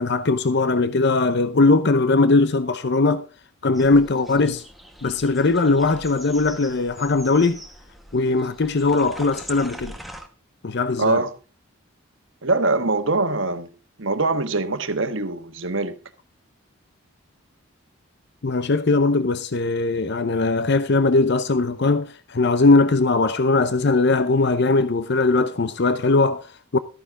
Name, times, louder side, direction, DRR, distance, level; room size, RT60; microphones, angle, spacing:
voice 1, 0.0-3.2 3.6-4.6 5.0-7.6 8.1-10.0 10.6-11.2 18.4-26.8, left 3 dB, 50° left, 0.6 m, -20 dB
sound 1, 3.7-10.3, right 1 dB, ahead, 1.0 m, -42 dB
voice 2, 11.0-11.3 12.4-13.7 14.0-15.9, right 3 dB, 60° right, 1.3 m, -23 dB
13.5 x 9.8 x 3.7 m
head